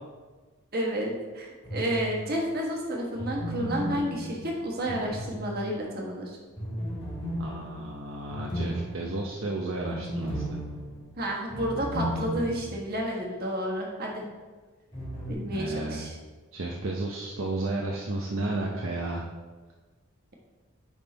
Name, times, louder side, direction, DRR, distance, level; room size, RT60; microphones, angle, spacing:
voice 1, 0.7-6.4 11.2-14.2 15.3-16.1, equal, 45° right, -1 dB, 1.4 m, -31 dB
sound 1, 1.6-2.4 3.1-5.9 6.6-12.8 13.1-13.2 14.9-15.3, equal, 25° left, 2.3 m, -35 dB
voice 2, 7.4-10.6 15.4-16.1 16.5-19.2, right 2 dB, 60° right, -1 dB, 0.7 m, -32 dB
9.6 x 3.7 x 4.0 m, 1.3 s
head